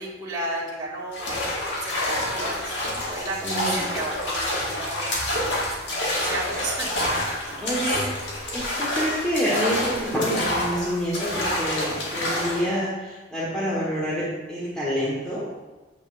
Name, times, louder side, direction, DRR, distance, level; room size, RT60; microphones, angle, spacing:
voice 1, 0.0-2.7 3.1-5.4 5.9-8.0, right 2 dB, 20° right, -9 dB, 2.1 m, -34 dB
sound 1, 1.1-12.7, left 1 dB, 75° left, 1.9 m, -28 dB
voice 2, 3.4-3.8 7.6-8.0 8.5-15.5, equal, 5° left, -9 dB, 1.5 m, -27 dB
8.9 x 8.1 x 2.6 m, 1.2 s
head